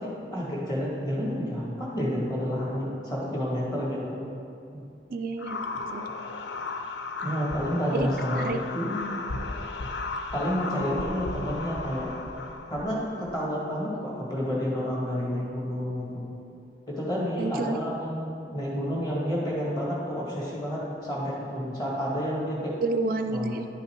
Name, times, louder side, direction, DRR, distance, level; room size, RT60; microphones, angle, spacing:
voice 1, 0.0-4.2 4.7-4.8 7.2-8.5 8.7-9.0 10.3-12.1 12.7-16.2 16.9-22.8 23.3-23.5, equal, 25° left, -5 dB, 1.9 m, -30 dB
voice 2, 5.1-5.6 5.9-6.0 7.9-8.1 8.3-8.6 17.4-17.8 22.8-23.7, right 3 dB, 50° right, 7 dB, 0.3 m, -29 dB
sound 1, 5.4-13.4, left 3 dB, 75° left, 0.6 m, -35 dB
10.5 x 5.6 x 4.5 m, 2.6 s
head